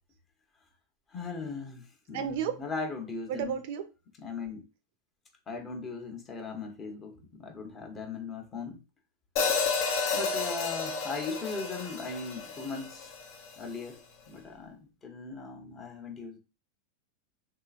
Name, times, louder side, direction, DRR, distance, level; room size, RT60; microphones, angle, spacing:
voice 1, 1.1-3.6 4.2-4.6 5.5-8.8 10.1-13.1 13.6-14.0 14.3-16.4, left 4 dB, 25° left, 0.8 m, -38 dB
voice 2, 2.1-2.5 3.3-3.8, right 9 dB, 65° right, 0.5 m, -32 dB
Hi-hat, 9.4-13.5, left 5 dB, 60° left, 0.7 m, -31 dB
3.3 x 2.8 x 2.4 m
supercardioid pair, 125°, 0 cm